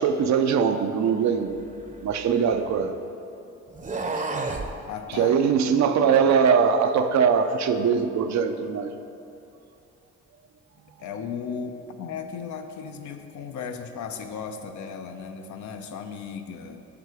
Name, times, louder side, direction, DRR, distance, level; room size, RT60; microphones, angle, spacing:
voice 1, 0.0-1.6 2.0-3.0 4.5-4.7 5.1-9.0, right 6 dB, 65° right, 8 dB, 0.7 m, -22 dB
sound 1, 1.5-3.0 3.7-4.7, right 3 dB, 25° right, 0.7 m, -32 dB
voice 2, 4.9-5.4 6.0-6.4 11.0-16.9, left 6 dB, 70° left, 6 dB, 0.8 m, -36 dB
8.6 x 6.6 x 4.9 m, 2.7 s
cardioid pair, 90°, 30 cm